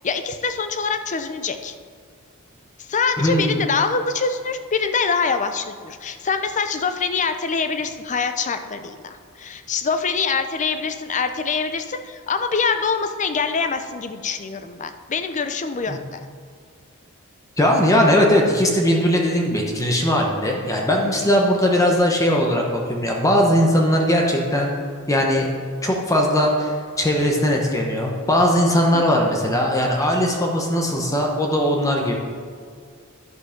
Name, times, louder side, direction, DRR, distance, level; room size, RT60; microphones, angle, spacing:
voice 1, 0.0-1.7 2.8-16.2 28.9-29.0, left 5 dB, 35° left, 8 dB, 0.5 m, -24 dB
voice 2, 3.2-3.6 15.9-16.0 17.6-24.7 25.1-25.5 25.8-32.1, equal, 15° left, 0 dB, 0.9 m, -19 dB
11.0 x 5.4 x 5.1 m, 2.1 s
head